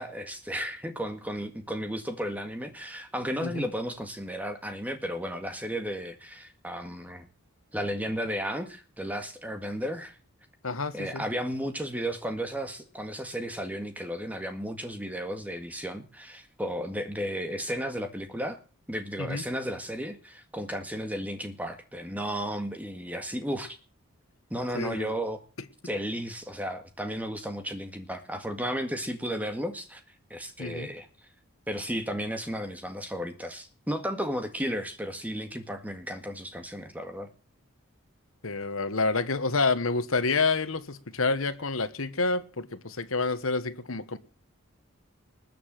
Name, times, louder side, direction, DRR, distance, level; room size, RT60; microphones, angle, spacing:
voice 1, 0.0-7.3 7.7-10.2 10.9-18.6 18.9-23.8 24.5-25.4 25.8-30.0 30.3-31.1 31.7-37.3, equal, 5° right, 1.8 m, -34 dB
voice 2, 10.6-11.2 19.2-19.4 24.7-25.1 30.6-30.9 38.4-44.2, left 3 dB, 70° left, 1.4 m, -28 dB
20.5 x 6.9 x 7.7 m
head